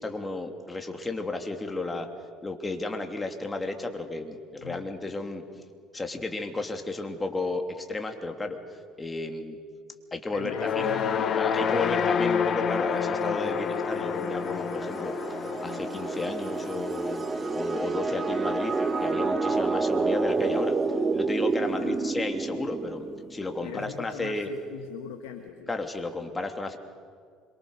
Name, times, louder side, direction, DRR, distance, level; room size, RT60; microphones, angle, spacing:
voice 1, 0.0-2.1 2.4-5.4 5.9-8.6 9.0-9.6 10.1-11.0 11.3-15.1 15.6-17.2 17.5-20.8 21.1-24.5 25.7-26.8, left 2 dB, 20° left, 5 dB, 3.0 m, -33 dB
voice 2, 10.3-12.1 21.6-22.1 23.6-25.8, left 10 dB, 70° left, 5 dB, 1.5 m, -41 dB
sound 1, 10.4-18.8, left 6 dB, 45° left, 1.5 m, -29 dB
sound 2, 12.9-23.4, right 4 dB, 30° right, 1.9 m, -29 dB
26.5 x 23.5 x 6.7 m, 2.1 s
hypercardioid pair, 60°, 0 cm